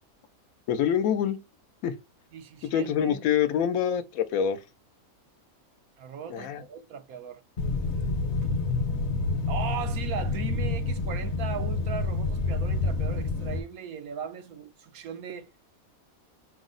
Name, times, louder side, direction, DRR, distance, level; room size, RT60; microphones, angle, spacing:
voice 1, 0.7-1.4 1.8-1.9 2.6-4.6 6.3-6.6, left 8 dB, 80° left, 1.1 m, -25 dB
voice 2, 2.3-3.2 6.0-7.4 8.4-8.5 9.5-15.5, right 7 dB, 85° right, 1.2 m, -38 dB
sound 1, 7.6-13.6, left 3 dB, 55° left, 1.0 m, -28 dB
5.3 x 2.0 x 3.8 m
omnidirectional pair, 1.5 m